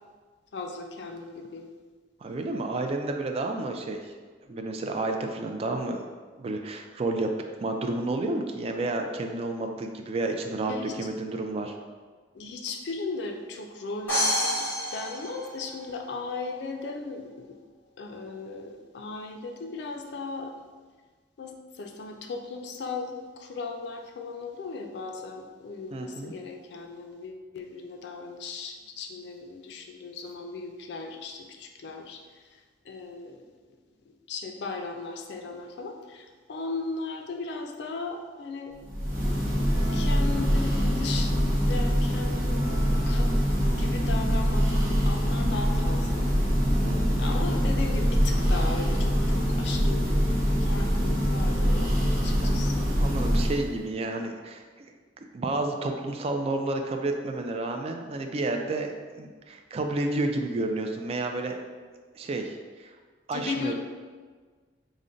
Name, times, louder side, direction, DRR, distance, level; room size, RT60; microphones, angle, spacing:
voice 1, 0.5-1.7 10.7-11.0 12.3-17.6 18.0-20.5 21.4-33.5 34.1-38.7 39.9-43.3 43.7-46.3 47.2-51.9 52.2-52.9 63.3-63.7, left 3 dB, 70° left, 4 dB, 0.4 m, -37 dB
voice 2, 2.2-4.0 4.5-6.1 6.4-7.3 7.6-11.8 25.9-26.3 46.8-47.2 52.4-52.5 53.0-54.7 55.3-61.6 62.1-62.9 63.3-63.7, right 2 dB, 35° right, 4 dB, 0.3 m, -30 dB
sound 1, 14.1-16.0, equal, 10° left, 1.5 m, -28 dB
Church bell, 38.8-53.8, equal, 50° right, 0.7 m, -24 dB
3.7 x 2.1 x 3.8 m, 1.5 s
head